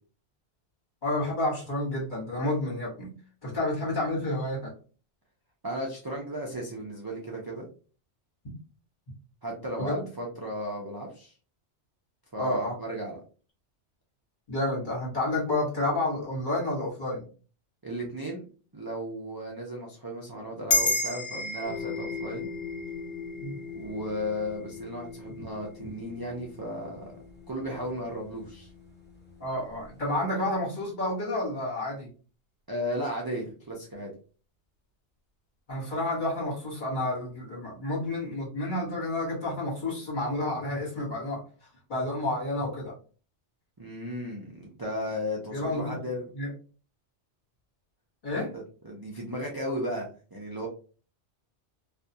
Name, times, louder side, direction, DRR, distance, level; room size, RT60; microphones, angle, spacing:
voice 1, 1.0-3.1 3.4-4.7 9.8-10.1 12.4-12.8 14.5-17.2 23.4-23.6 25.8-25.9 29.4-32.1 35.7-41.4 41.9-42.9 45.5-46.0 46.3-46.5 48.2-48.5, left 1 dB, 45° left, -5 dB, 1.3 m, -30 dB
voice 2, 5.6-7.7 9.4-11.3 12.3-13.2 17.8-18.5 18.7-22.5 23.7-27.0 27.5-28.7 32.7-34.1 43.8-46.3 48.4-50.7, equal, 35° right, -3 dB, 0.3 m, -35 dB
sound 1, 20.7-25.4, left 2 dB, 65° left, 0.8 m, -32 dB
sound 2, 21.6-30.1, left 5 dB, 10° left, 1.1 m, -42 dB
2.5 x 2.3 x 2.6 m, 0.38 s
omnidirectional pair, 1.2 m